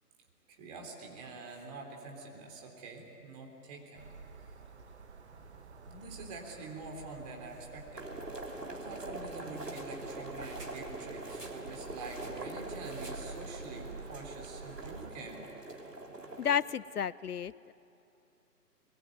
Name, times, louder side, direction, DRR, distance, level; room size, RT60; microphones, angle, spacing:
voice 1, 0.5-4.0 5.3-5.4 5.8-8.0 8.7-15.5, right 3 dB, 25° right, 0 dB, 3.8 m, -46 dB
sound 1, 3.9-15.1, right 4 dB, 45° right, 1.7 m, -49 dB
sound 2, 7.9-16.6, right 2 dB, 80° right, 3.6 m, -43 dB
voice 2, 16.4-17.7, left 8 dB, 70° left, 20 dB, 0.6 m, -32 dB
22.0 x 22.0 x 9.4 m, 2.7 s
figure-of-eight pair, 145°, 48 cm